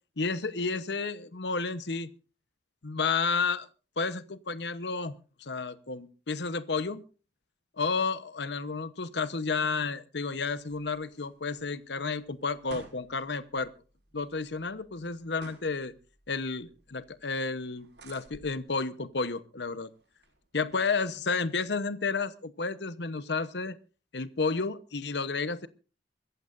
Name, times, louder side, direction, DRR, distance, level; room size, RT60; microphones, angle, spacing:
voice 1, 0.2-2.1 2.8-3.7 4.0-5.1 5.4-7.0 7.8-13.7 14.1-15.9 16.3-19.9 20.5-23.8 24.1-25.7, left 4 dB, 75° left, 14 dB, 1.0 m, -31 dB
sound 1, 10.3-21.6, right 2 dB, 75° right, 5.6 m, -55 dB
24.5 x 15.0 x 2.6 m, 0.34 s
head